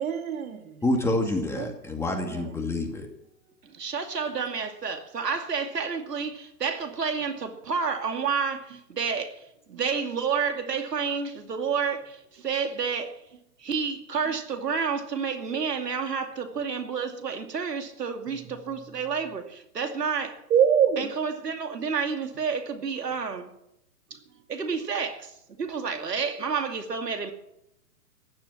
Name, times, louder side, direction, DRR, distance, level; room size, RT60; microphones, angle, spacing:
voice 1, 0.0-0.8 1.6-1.7 2.3-2.5 9.7-9.8 18.3-18.5 20.5-21.1, right 8 dB, 60° right, 5 dB, 3.0 m, -24 dB
voice 2, 0.8-3.1, left 1 dB, 5° left, 2 dB, 2.3 m, -27 dB
voice 3, 3.6-13.2 13.6-20.4 21.0-23.5 24.1-24.2 24.5-27.3, right 5 dB, 85° right, 6 dB, 2.6 m, -30 dB
15.5 x 11.0 x 7.5 m, 0.81 s
hypercardioid pair, 130°, 47 cm